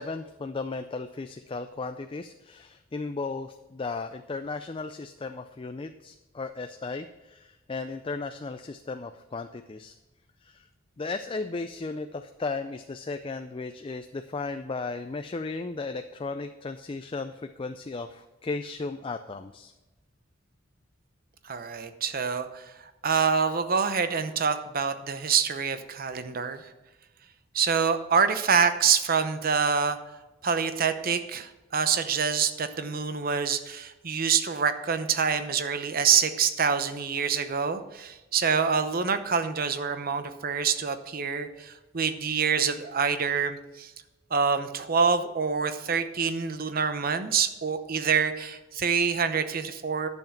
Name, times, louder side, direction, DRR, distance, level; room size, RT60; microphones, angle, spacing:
voice 1, 0.0-9.9 10.4-10.7 11.0-19.7, left 3 dB, 25° left, 8 dB, 0.4 m, -35 dB
voice 2, 21.4-22.7 23.0-26.6 27.5-30.0 30.4-43.9 44.3-50.1, right 6 dB, 45° right, 10 dB, 0.8 m, -26 dB
11.0 x 7.2 x 5.8 m, 1.1 s
head